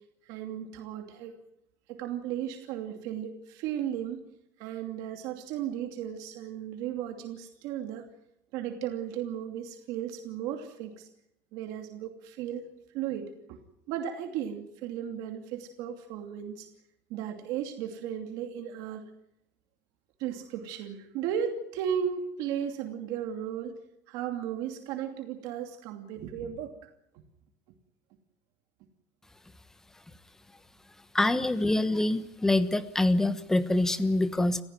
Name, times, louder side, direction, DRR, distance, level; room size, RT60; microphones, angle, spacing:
voice 1, 0.2-1.3 1.9-4.2 4.6-8.1 8.5-11.1 11.5-12.6 12.9-13.6 13.9-16.7 17.1-19.0 20.2-23.7 24.1-26.9, right 9 dB, 60° right, 5 dB, 2.7 m, -35 dB
voice 2, 31.1-34.6, left 2 dB, 5° left, 12 dB, 1.2 m, -25 dB
29.5 x 15.5 x 9.2 m, 0.80 s
cardioid pair, 175°, 7 cm